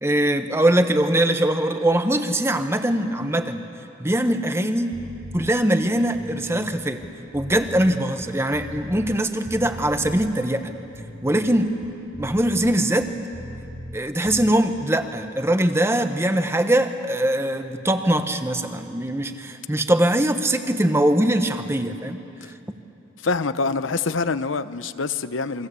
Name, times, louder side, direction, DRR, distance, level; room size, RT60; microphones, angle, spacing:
voice 1, 0.0-3.7 4.0-5.0 5.3-7.0 7.3-10.7 11.2-11.7 12.2-13.1 13.9-22.2, right 1 dB, 15° right, 1.1 m, -22 dB
sound 1, 4.9-5.5 6.0-9.2 9.4-10.3 10.8-14.0 14.2-14.5, equal, 50° right, 5.3 m, -39 dB
voice 2, 23.2-25.7, left 4 dB, 90° left, 0.8 m, -25 dB
29.0 x 23.5 x 8.3 m
head